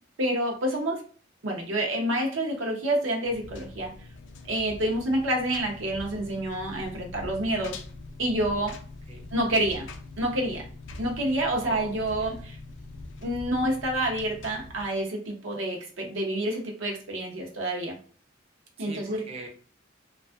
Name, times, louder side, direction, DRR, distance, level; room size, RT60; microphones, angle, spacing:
voice 1, 0.2-1.0 1.4-3.9 4.5-7.8 8.2-8.8 9.3-9.9 10.2-10.6 11.0-12.6 13.2-18.0 18.8-19.3, right 1 dB, 85° right, 1 dB, 0.7 m, -28 dB
Engine, 3.2-14.9, left 2 dB, 70° left, 0.3 m, -43 dB
voice 2, 11.6-12.5 18.8-19.5, right 2 dB, 30° right, 1 dB, 0.4 m, -43 dB
2.4 x 2.3 x 2.3 m, 0.42 s
head